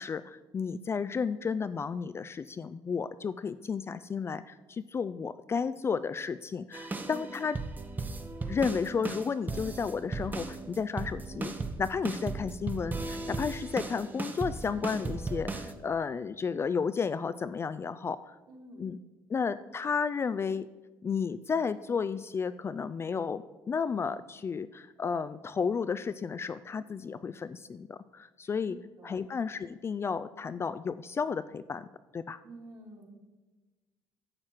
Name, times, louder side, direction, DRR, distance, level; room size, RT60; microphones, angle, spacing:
voice 1, 0.0-7.6 8.5-18.3 18.8-19.0 19.3-20.7 21.0-28.8 29.0-31.9 32.1-32.4, left 5 dB, 30° left, 13 dB, 0.3 m, -32 dB
sound 1, 6.7-15.7, right 3 dB, 20° right, 0.9 m, -36 dB
voice 2, 7.0-7.3 18.5-18.9 28.6-29.2 32.4-33.1, right 2 dB, 50° right, 0 dB, 2.6 m, -49 dB
11.5 x 7.3 x 4.5 m, 1.2 s
cardioid pair, 100°, 9 cm